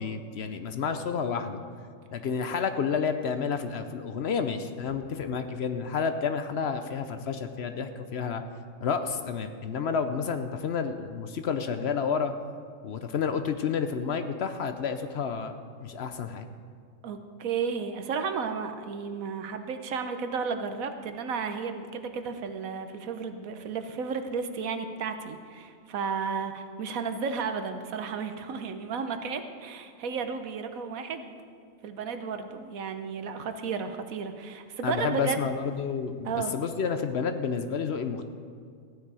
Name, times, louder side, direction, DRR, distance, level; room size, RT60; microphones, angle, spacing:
voice 1, 0.0-1.6 2.1-8.4 8.8-12.3 12.8-15.5 15.8-16.5 34.8-38.3, left 6 dB, 60° left, 8 dB, 0.8 m, -30 dB
voice 2, 17.0-31.4 31.8-35.4 36.2-36.5, right 5 dB, 85° right, 8 dB, 1.3 m, -33 dB
15.0 x 9.9 x 4.8 m, 2.1 s
omnidirectional pair, 1.4 m